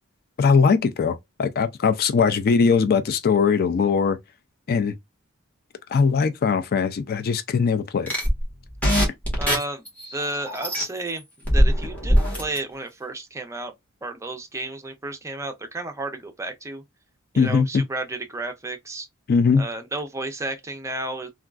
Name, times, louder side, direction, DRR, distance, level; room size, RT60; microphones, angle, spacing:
voice 1, 0.4-4.2 4.7-4.9 5.9-8.1 17.4-17.8 19.3-19.7, left 5 dB, 50° left, 0.4 m, -20 dB
sound 1, 8.1-10.8 11.5-12.6, equal, 10° left, 1.3 m, -21 dB
voice 2, 9.4-9.8 10.1-11.2 11.5-13.7 14.0-16.8 17.3-19.1 19.5-21.3, right 2 dB, 15° right, 0.5 m, -32 dB
3.4 x 2.3 x 2.3 m
head